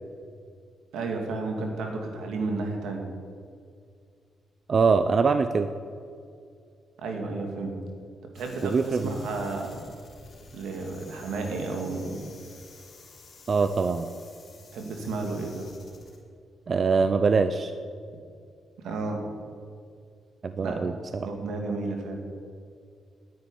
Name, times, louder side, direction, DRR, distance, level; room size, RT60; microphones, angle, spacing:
voice 1, 0.9-3.1 7.0-7.8 8.3-9.9 10.5-12.2 14.7-15.7 18.8-19.2 20.6-20.8 21.2-22.2, right 3 dB, 85° right, 3 dB, 2.4 m, -32 dB
voice 2, 4.7-5.7 8.6-9.1 13.5-14.1 16.7-17.7 20.4-21.3, right 5 dB, 45° right, 10 dB, 0.6 m, -23 dB
sound 1, 8.3-16.2, left 3 dB, 45° left, 3.8 m, -51 dB
9.6 x 9.4 x 9.8 m, 2.3 s
cardioid pair, 90°, 0 cm